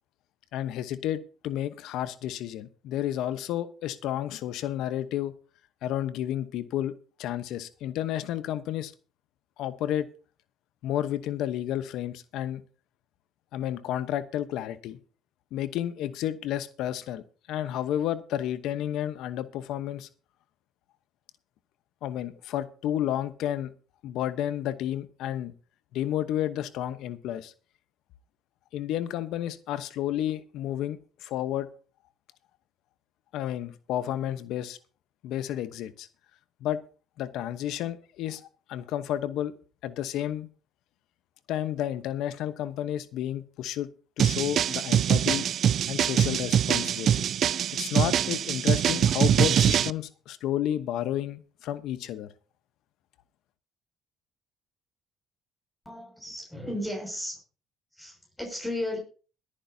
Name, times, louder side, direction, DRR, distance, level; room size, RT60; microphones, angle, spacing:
voice 1, 0.5-5.3 5.8-6.9 7.2-8.9 9.6-10.1 10.8-12.6 13.5-15.0 15.5-17.2 17.5-20.1 22.0-23.7 24.0-25.5 25.9-27.5 28.7-31.7 33.3-34.8 35.2-36.1 36.6-36.8 37.2-38.4 38.7-39.5 39.8-40.5 41.5-43.9 44.2-45.5 45.9-47.3 47.8-52.3, left 11 dB, 75° left, 0.9 m, -31 dB
sound 1, 44.2-49.9, right 9 dB, 60° right, 0.5 m, -24 dB
voice 2, 55.8-57.3 57.9-59.0, left 1 dB, 10° left, 6.2 m, -34 dB
22.0 x 10.0 x 2.8 m
supercardioid pair, 70°, 0 cm